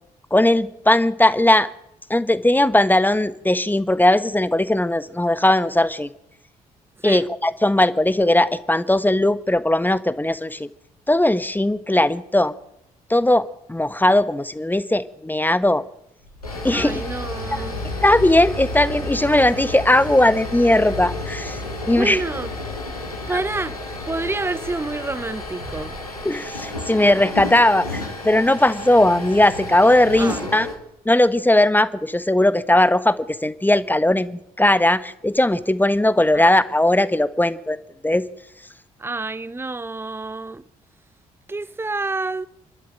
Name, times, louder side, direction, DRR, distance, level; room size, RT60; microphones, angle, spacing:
voice 1, 0.3-1.7 2.1-6.1 7.0-10.7 11.1-12.5 13.1-15.8 16.6-17.0 17.5-17.6 18.0-21.6 21.9-22.2 23.3-23.4 26.2-30.7 31.0-37.8 38.0-38.2, left 1 dB, 10° left, 1.3 m, -18 dB
voice 2, 7.0-7.3 16.7-17.8 21.8-22.5 23.3-23.8 24.1-26.0 30.2-30.5 36.3-36.5 39.0-40.6 41.5-42.5, right 3 dB, 15° right, 0.9 m, -28 dB
sound 1, 16.2-30.8, left 2 dB, 90° left, 2.2 m, -31 dB
28.0 x 12.0 x 9.0 m
figure-of-eight pair, 40°, 19 cm